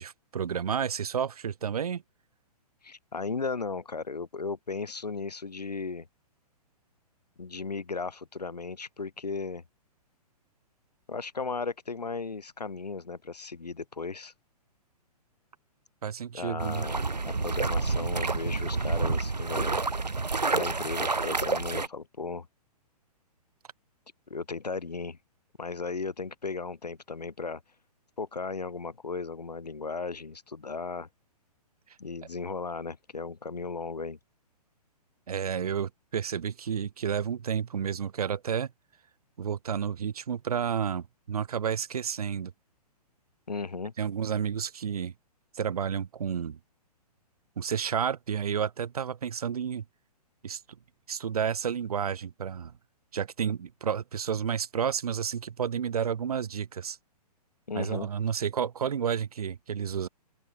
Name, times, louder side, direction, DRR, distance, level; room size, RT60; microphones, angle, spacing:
voice 1, 0.0-2.0 16.0-16.9 35.3-38.7 39.4-42.5 44.0-45.1 45.5-46.6 47.6-49.8 50.4-50.6 51.1-52.7 53.1-57.0 57.8-60.1, right 7 dB, 65° right, 4.0 m, -31 dB
voice 2, 2.8-6.1 7.4-9.6 11.1-14.3 16.3-19.8 20.5-22.5 24.3-25.2 25.6-27.6 28.2-31.1 32.0-34.2 43.5-43.9 57.7-58.1, left 4 dB, 80° left, 2.5 m, -36 dB
sound 1, 16.6-21.9, right 3 dB, 85° right, 2.3 m, -29 dB
open air
figure-of-eight pair, 120°, 21 cm